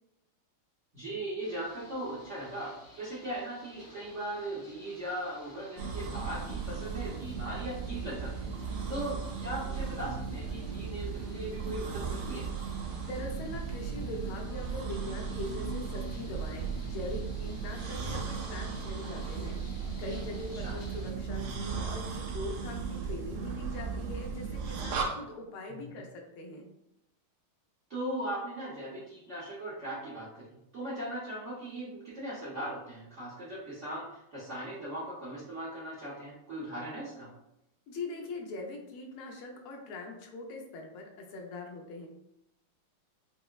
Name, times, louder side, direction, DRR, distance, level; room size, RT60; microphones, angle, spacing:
voice 1, 0.9-12.5 20.5-20.8 25.7-25.9 27.9-37.3, right 1 dB, 60° right, -8 dB, 0.7 m, -39 dB
sound 1, 1.4-21.1, left 1 dB, 30° left, 0.5 m, -54 dB
sound 2, 5.8-25.0, right 5 dB, 85° right, 1.6 m, -36 dB
voice 2, 13.0-26.7 37.9-42.1, left 2 dB, 85° left, 2 dB, 1.5 m, -42 dB
5.4 x 2.0 x 2.3 m, 0.84 s
omnidirectional pair, 2.3 m